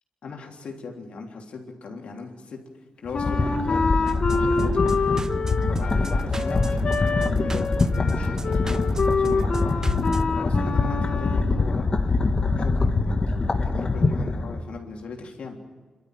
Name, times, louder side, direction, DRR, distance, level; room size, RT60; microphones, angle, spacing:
voice 1, 0.2-2.6 3.0-4.0 4.3-5.0 5.7-9.8 10.3-12.1 12.6-15.6, left 4 dB, 75° left, 1 dB, 3.4 m, -38 dB
Wind instrument woodwind instrument, 3.1-11.6, left 4 dB, 60° left, 2.1 m, -27 dB
sound 1, 3.1-14.6, left 3 dB, 45° left, 1.8 m, -24 dB
sound 2, 4.1-10.2, right 3 dB, 30° right, 0.7 m, -35 dB
26.5 x 13.0 x 9.3 m, 1.4 s
cardioid pair, 60°, 2 cm